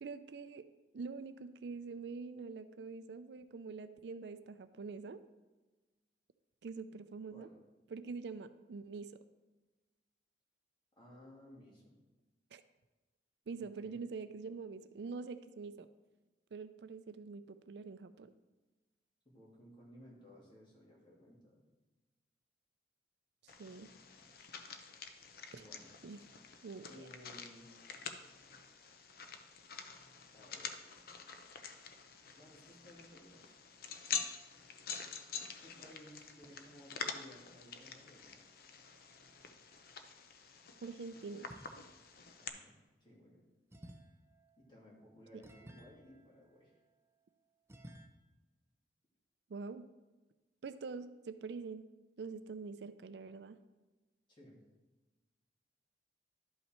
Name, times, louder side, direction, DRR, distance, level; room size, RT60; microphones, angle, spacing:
voice 1, 0.0-0.7 0.9-5.2 6.6-7.5 7.9-9.2 12.5-12.6 13.5-15.9 16.5-18.3 23.6-23.9 25.5-25.7 26.0-26.2 26.6-27.1 40.8-41.5 45.3-45.4 49.5-49.9 50.6-51.8 52.2-53.6, right 4 dB, 70° right, 12 dB, 0.4 m, -45 dB
voice 2, 11.0-12.0 13.6-14.0 19.2-21.6 24.3-24.5 25.6-25.9 26.9-27.7 30.3-30.9 32.3-33.6 35.6-38.4 42.4-43.4 44.6-46.7 54.3-54.6, equal, 25° left, -4 dB, 2.4 m, -58 dB
sound 1, 23.5-42.5, left 6 dB, 55° left, 0.7 m, -47 dB
sound 2, 41.5-42.2 43.7-47.1 47.7-48.1, right 1 dB, 15° right, 0.6 m, -57 dB
11.5 x 5.6 x 4.4 m, 1.2 s
head